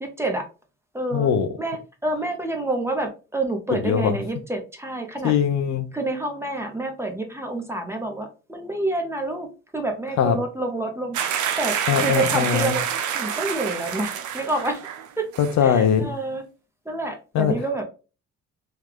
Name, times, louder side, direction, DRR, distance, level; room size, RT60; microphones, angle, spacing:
voice 1, 0.0-0.4 0.9-1.3 1.6-5.3 5.9-9.5 9.7-11.2 11.6-12.8 13.1-14.8 15.2-15.3 15.6-16.4 16.9-17.8, right 2 dB, 10° right, 0.8 m, -28 dB
voice 2, 1.1-1.5 3.7-4.1 5.2-5.9 10.2-10.4 11.9-12.7 15.4-16.1 17.3-17.6, left 8 dB, 65° left, 0.6 m, -21 dB
sound 1, 11.1-15.1 15.3-15.6, right 8 dB, 75° right, 0.6 m, -27 dB
3.1 x 2.3 x 3.4 m
cardioid pair, 90°, 30 cm